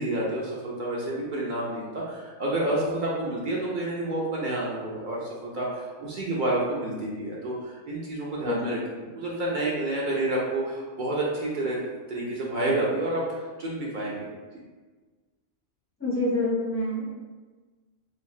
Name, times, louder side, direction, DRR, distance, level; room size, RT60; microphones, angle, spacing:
voice 1, 0.0-8.8 9.1-14.3, right 1 dB, 60° right, -5 dB, 0.5 m, -29 dB
voice 2, 8.4-8.8 16.0-17.0, left 2 dB, 15° left, -7 dB, 0.6 m, -27 dB
3.2 x 2.3 x 2.3 m, 1.4 s
omnidirectional pair, 1.2 m